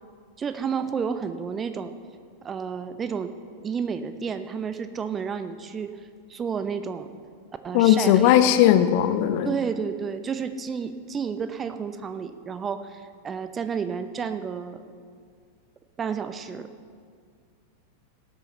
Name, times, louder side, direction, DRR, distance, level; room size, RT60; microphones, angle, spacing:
voice 1, 0.4-1.9 2.4-3.3 3.6-5.9 6.3-7.1 7.6-8.3 8.8-9.0 9.4-14.8 16.0-16.7, right 6 dB, 20° right, 10 dB, 0.7 m, -31 dB
voice 2, 7.7-9.5, left 11 dB, 45° left, 10 dB, 0.7 m, -18 dB
19.0 x 8.1 x 4.4 m, 2.1 s
figure-of-eight pair, 90°, 0 cm